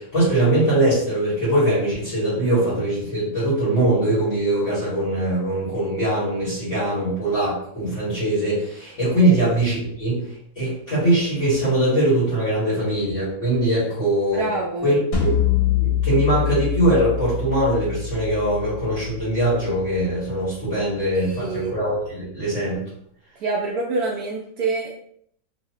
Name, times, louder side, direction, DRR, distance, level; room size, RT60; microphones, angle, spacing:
voice 1, 0.0-10.2 10.5-14.5 14.8-15.3 15.7-22.8, right 1 dB, 40° left, -9 dB, 1.7 m, -21 dB
voice 2, 14.3-15.0 21.2-21.8 23.4-25.0, right 3 dB, 85° right, -2 dB, 0.8 m, -27 dB
sound 1, 15.1-20.2, left 8 dB, 75° left, 1.6 m, -25 dB
3.3 x 2.7 x 2.8 m, 0.66 s
omnidirectional pair, 2.1 m